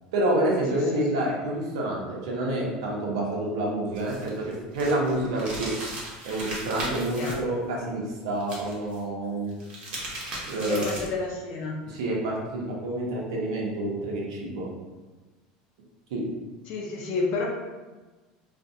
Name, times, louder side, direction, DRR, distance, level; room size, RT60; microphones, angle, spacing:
voice 1, 0.1-5.7 6.2-9.5 10.5-10.9 11.9-14.7 16.1-16.2, right 1 dB, 85° right, -3 dB, 0.6 m, -28 dB
voice 2, 0.7-1.0 7.2-7.4 10.6-11.8 16.7-17.4, left 3 dB, 65° left, -2 dB, 0.5 m, -30 dB
sound 1, 3.9-7.3 8.4-9.0 9.5-11.2, right 1 dB, 40° right, 0.8 m, -37 dB
2.4 x 2.1 x 2.6 m, 1.2 s
supercardioid pair, 110°, 3 cm